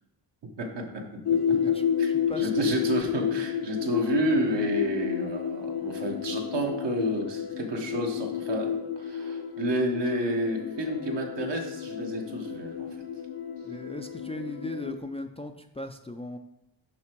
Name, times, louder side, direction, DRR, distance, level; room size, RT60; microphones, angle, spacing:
voice 1, 0.6-1.4 2.0-2.1 2.4-12.9, right 1 dB, 70° right, 1 dB, 1.4 m, -30 dB
sound 1, 1.2-15.0, left 8 dB, 55° left, 0.7 m, -30 dB
voice 2, 1.5-2.7 13.6-16.4, left 2 dB, 15° left, 5 dB, 0.4 m, -38 dB
5.9 x 5.6 x 4.6 m, 0.86 s
cardioid pair, 85°, 44 cm